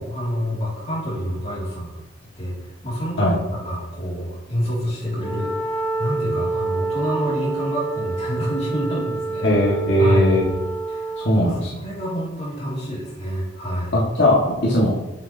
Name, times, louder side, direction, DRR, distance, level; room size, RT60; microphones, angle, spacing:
voice 1, 0.0-2.0 2.4-5.5 6.0-9.5 10.0-10.3 10.9-13.9, equal, 35° left, -5 dB, 2.3 m, -28 dB
Wind instrument woodwind instrument, 5.1-11.4, right 3 dB, 10° left, 0.5 m, -28 dB
voice 2, 9.4-10.5 11.2-11.7 13.9-14.9, left 1 dB, 75° left, -5 dB, 1.5 m, -18 dB
7.3 x 6.1 x 2.7 m, 0.96 s
head